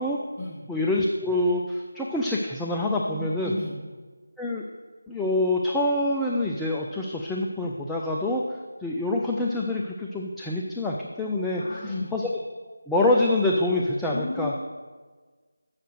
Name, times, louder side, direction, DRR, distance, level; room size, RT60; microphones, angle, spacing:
voice 1, 0.7-3.5 4.4-4.6 5.1-12.3 12.9-14.5, left 2 dB, ahead, -4 dB, 0.3 m, -26 dB
voice 2, 3.1-3.8 11.5-12.1 14.1-14.8, left 2 dB, 20° left, -6 dB, 1.9 m, -34 dB
7.5 x 6.5 x 6.5 m, 1.4 s
figure-of-eight pair, 160°, 0 cm